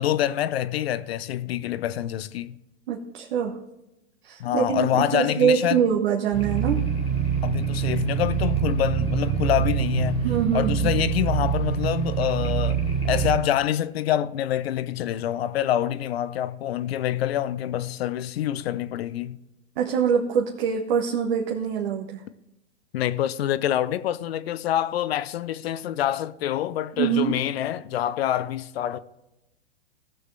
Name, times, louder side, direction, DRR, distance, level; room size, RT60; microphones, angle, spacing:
voice 1, 0.0-2.6 4.4-5.8 7.4-19.4 22.9-29.0, left 11 dB, 60° left, 0.7 m, -26 dB
voice 2, 2.9-3.6 4.2-6.9 10.2-11.0 19.8-22.2 27.0-27.4, right 7 dB, 55° right, 1.3 m, -24 dB
sound 1, 6.3-13.4, right 8 dB, 15° left, 2.0 m, -25 dB
18.0 x 6.4 x 3.3 m
hypercardioid pair, 125°, 35 cm